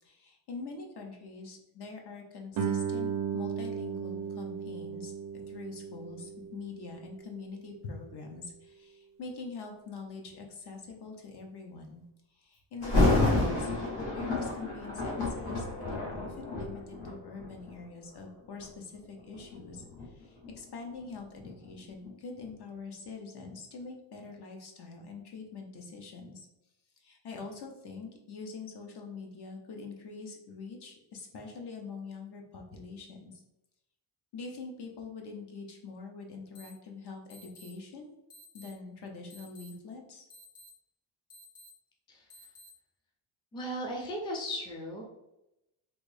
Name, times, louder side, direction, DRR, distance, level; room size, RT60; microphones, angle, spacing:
voice 1, 0.0-5.1 5.5-12.0 12.4-13.7 14.0-26.5 27.0-33.3 34.3-38.2 38.5-40.2, left 4 dB, 55° left, 2 dB, 0.8 m, -44 dB
Guitar, 2.5-7.9, right 7 dB, 45° right, 0.4 m, -36 dB
Thunder, 12.8-17.8 18.4-18.7 19.3-22.1 22.5-22.6, left 2 dB, 85° left, 1.5 m, -30 dB
sound 1, 36.5-36.7 37.3-37.7 38.3-38.7 39.3-39.7 40.3-40.7 41.3-41.7 42.3-42.7, equal, 30° left, 1.1 m, -53 dB
voice 2, 43.5-45.0, equal, 10° left, 0 dB, 0.4 m, -36 dB
3.3 x 2.6 x 3.2 m, 0.90 s
wide cardioid pair, 150°, 47 cm